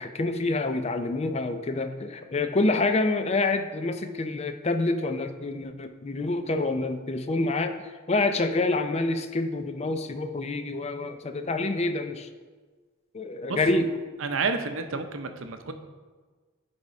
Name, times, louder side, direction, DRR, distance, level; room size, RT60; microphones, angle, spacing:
voice 1, 0.0-7.8 8.1-12.3 13.1-13.9, left 2 dB, 30° left, 8 dB, 0.4 m, -27 dB
voice 2, 14.2-15.7, right 4 dB, 60° right, 7 dB, 0.6 m, -30 dB
10.5 x 3.6 x 5.2 m, 1.4 s
head